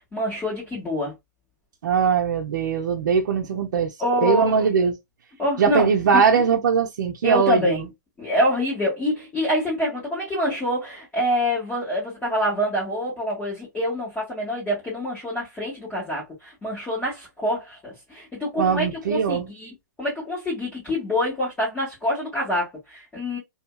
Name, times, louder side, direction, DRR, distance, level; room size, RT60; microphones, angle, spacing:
voice 1, 0.1-1.1 4.0-4.6 5.4-6.2 7.2-7.8 8.2-23.4, equal, 15° left, 1.5 m, -26 dB
voice 2, 1.8-3.9 4.2-5.0 5.6-7.8 18.6-19.5, right 6 dB, 75° right, 0.6 m, -21 dB
2.7 x 2.6 x 2.3 m
hypercardioid pair, 150°, 10 cm